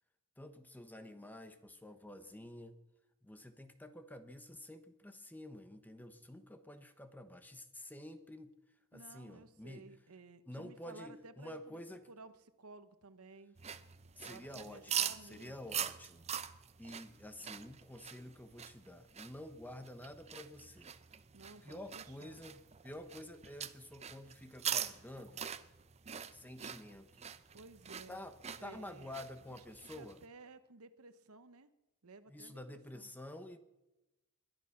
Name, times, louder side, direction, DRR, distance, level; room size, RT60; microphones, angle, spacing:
voice 1, 0.4-2.7 3.2-8.5 8.9-9.9 10.5-12.0 14.2-16.3 16.8-20.9 21.6-25.5 26.3-27.3 28.1-28.4 28.6-30.2 32.3-33.6, left 1 dB, 10° left, 9 dB, 1.0 m, -50 dB
voice 2, 8.9-11.8 12.1-13.5 14.2-15.8 21.3-22.4 27.5-28.2 28.6-29.1 29.5-29.6 29.9-31.7 32.0-33.1, right 3 dB, 85° right, 12 dB, 1.0 m, -55 dB
sound 1, 13.6-30.2, right 9 dB, 30° right, 0.6 m, -44 dB
21.0 x 11.0 x 5.8 m, 0.99 s
head